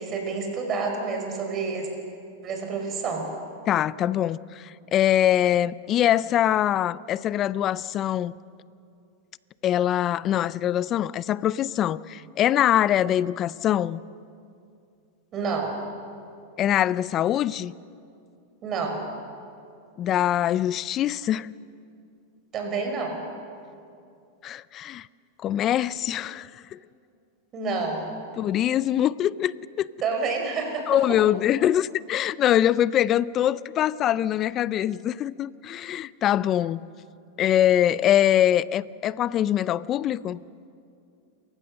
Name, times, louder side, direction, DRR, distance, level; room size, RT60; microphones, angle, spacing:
voice 1, 0.0-1.9 2.4-3.2 15.3-15.7 18.6-19.0 22.5-23.2 27.5-28.1 30.0-31.0, right 4 dB, 35° right, 5.3 m, -28 dB
voice 2, 3.7-8.3 9.6-14.0 16.6-17.7 20.0-21.5 24.4-25.1 25.4-26.8 28.4-29.5 29.8-29.9 30.9-36.8 37.4-40.4, left 11 dB, 35° left, 0.5 m, -23 dB
29.0 x 15.5 x 6.6 m
hypercardioid pair, 110°, 0 cm